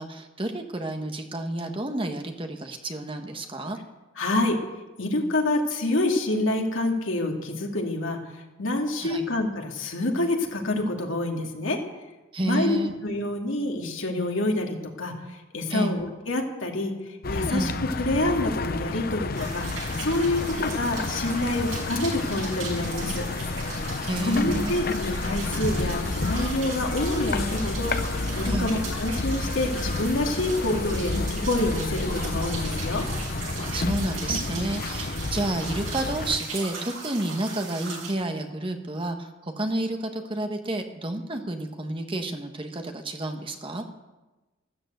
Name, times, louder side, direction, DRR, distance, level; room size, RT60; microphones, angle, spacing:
voice 1, 0.0-3.8 9.0-9.3 12.3-12.9 15.7-16.0 17.5-17.7 24.0-24.7 28.5-28.7 33.7-43.8, right 1 dB, 25° right, 5 dB, 1.3 m, -30 dB
voice 2, 4.2-4.6 5.0-11.8 12.4-19.7 20.0-23.3 24.2-33.0, left 2 dB, 70° left, 1 dB, 2.5 m, -27 dB
sound 1, 17.2-36.4, left 3 dB, 45° left, 0.7 m, -30 dB
sound 2, 19.3-38.1, right 4 dB, 75° right, 6.3 m, -38 dB
13.5 x 13.5 x 8.0 m, 1.1 s
head